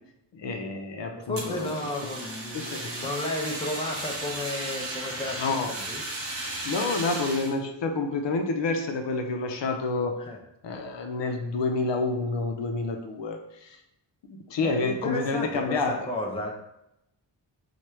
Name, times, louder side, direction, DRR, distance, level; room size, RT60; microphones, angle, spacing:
voice 1, 0.3-2.1 2.5-2.9 5.4-5.7 6.6-10.2 10.6-13.8 14.5-16.1, left 3 dB, 75° left, 5 dB, 0.7 m, -29 dB
voice 2, 1.1-5.4 5.7-6.0 10.2-10.4 14.6-16.5, left 1 dB, 15° left, 0 dB, 0.6 m, -33 dB
Fire, 1.3-7.6, right 2 dB, 30° right, 0.8 m, -35 dB
4.7 x 2.4 x 4.3 m, 0.84 s
wide cardioid pair, 170°, 44 cm